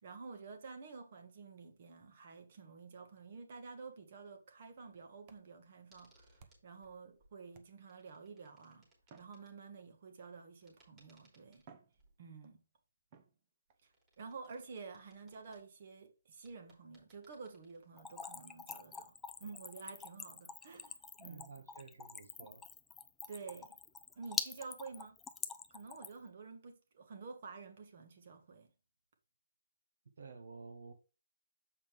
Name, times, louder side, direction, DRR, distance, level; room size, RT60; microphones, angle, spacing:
voice 1, 0.0-8.9 9.2-11.6 12.2-12.6 14.2-19.1 19.4-21.5 23.3-23.8 24.1-25.2 25.7-28.7, right 4 dB, 45° right, 1.7 m, -50 dB
sound 1, 5.2-6.9 7.5-8.1 9.0-10.1 11.0-11.1 11.5-12.6 13.1-13.8 15.3-15.6 16.7-16.9 17.5-17.6 18.0-18.1 18.4-18.6 18.9-19.0 19.4-19.5 19.9-20.0 20.4-20.5 21.4-21.5, right 6 dB, 30° right, 0.9 m, -64 dB
sound 2, 5.9-7.3 7.6-9.5 10.6-12.2 13.7-15.6 16.2-16.3 16.4-18.1 20.2-20.3, right 1 dB, 15° right, 2.9 m, -70 dB
Splash splatter / Trickle dribble, 18.0-26.3, left 5 dB, 10° left, 0.4 m, -45 dB
voice 2, 21.3-22.6 30.2-30.9, right 4 dB, 65° right, 1.2 m, -52 dB
7.2 x 5.3 x 3.5 m
hypercardioid pair, 155°, 0 cm